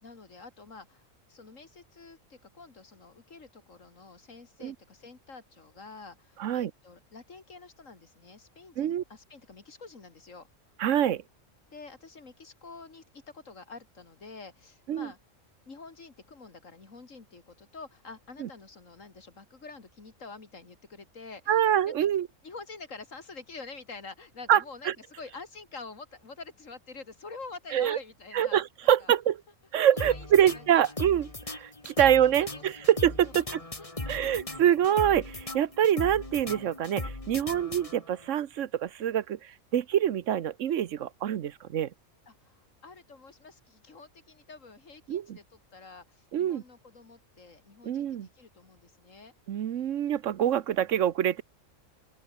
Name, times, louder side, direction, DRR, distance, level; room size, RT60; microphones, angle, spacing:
voice 1, 0.0-10.5 11.7-15.2 15.7-22.1 22.4-28.6 29.0-29.1 29.9-30.6 32.5-32.9 33.2-33.4 33.8-34.6 42.3-49.3, left 4 dB, 85° left, 3.1 m, -47 dB
voice 2, 6.4-6.7 8.8-9.0 10.8-11.2 14.9-15.1 18.4-18.5 21.5-22.3 24.5-24.6 24.9-25.0 27.7-28.0 28.3-29.4 29.7-33.6 34.1-41.9 45.1-45.2 46.3-46.6 47.8-48.3 49.5-51.4, right 10 dB, 75° right, 1.1 m, -25 dB
sound 1, 30.0-38.3, left 2 dB, 25° left, 2.7 m, -38 dB
open air
omnidirectional pair, 1.3 m